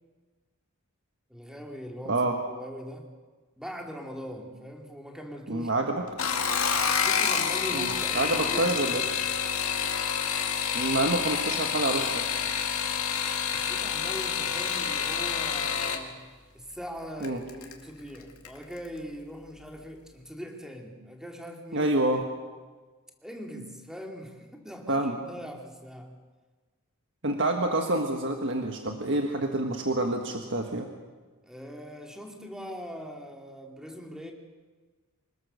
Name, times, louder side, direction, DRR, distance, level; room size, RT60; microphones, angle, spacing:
voice 1, 1.3-3.1 3.6-5.7 6.0-6.1 6.7-8.8 13.5-22.2 23.2-26.2 31.4-34.3, equal, 5° right, 2 dB, 2.3 m, -41 dB
voice 2, 5.5-6.0 7.7-9.0 10.7-12.3 17.2-17.4 21.7-22.2 24.9-25.2 27.2-30.9, right 2 dB, 55° right, 3 dB, 1.6 m, -27 dB
sound 1, 6.1-16.0 17.2-17.7 18.1-18.6 18.8-18.9, left 7 dB, 85° left, 2.2 m, -28 dB
25.5 x 20.5 x 6.8 m, 1.4 s
head